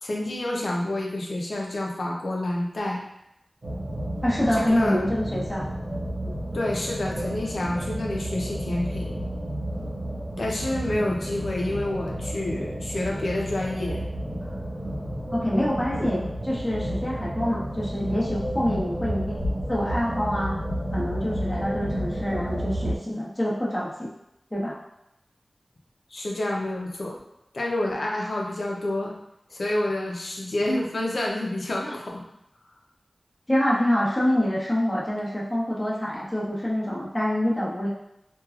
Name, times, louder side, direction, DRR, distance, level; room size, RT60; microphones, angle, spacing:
voice 1, 0.0-3.0 4.5-5.0 6.5-9.1 10.4-14.0 15.9-16.1 26.1-27.2 27.5-29.1 29.5-32.2, left 1 dB, 80° left, -2 dB, 0.5 m, -28 dB
sound 1, 3.6-23.0, equal, 75° right, 0.7 m, -31 dB
voice 2, 4.2-5.7 6.2-6.4 15.3-19.4 19.7-20.5 20.9-24.1 24.5-24.7 31.8-31.9 33.5-37.9, left 1 dB, 15° left, -7 dB, 0.8 m, -26 dB
3.1 x 2.3 x 2.3 m, 0.83 s
cardioid pair, 40°, 0 cm